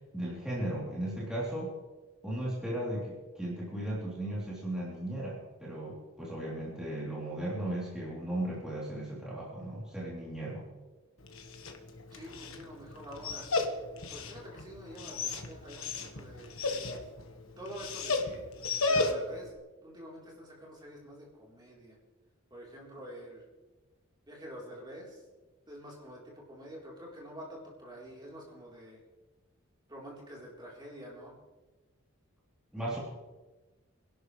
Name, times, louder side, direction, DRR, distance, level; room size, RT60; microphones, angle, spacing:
voice 1, 0.1-1.7 2.2-10.7 32.7-33.0, right 1 dB, 5° right, -7 dB, 3.3 m, -36 dB
Dog, 11.2-19.5, left 3 dB, 75° left, 1.5 m, -35 dB
voice 2, 12.1-13.5 14.1-17.1 17.6-18.4 18.9-19.5 19.8-22.0 22.5-23.4 24.3-25.2 25.7-29.0 29.9-31.4, equal, 20° right, -4 dB, 3.8 m, -47 dB
24.0 x 12.0 x 3.3 m, 1.2 s
head